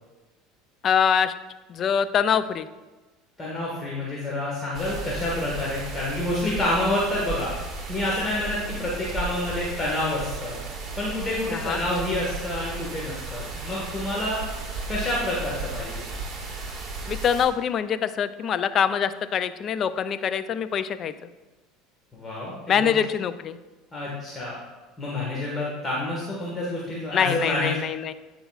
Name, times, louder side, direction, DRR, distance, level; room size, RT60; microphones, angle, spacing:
voice 1, 0.8-1.3 1.7-2.7 11.5-11.8 17.1-21.1 22.7-23.6 27.1-28.1, left 8 dB, 45° left, 13 dB, 0.4 m, -24 dB
voice 2, 3.4-7.5 7.9-10.6 11.0-14.4 14.9-16.0 22.1-22.9 23.9-24.6 25.0-27.7, left 1 dB, 25° left, -5 dB, 1.5 m, -28 dB
sound 1, 4.7-17.5, right 3 dB, 35° right, 1.6 m, -35 dB
9.9 x 5.1 x 2.4 m, 1.2 s
supercardioid pair, 100°, 0 cm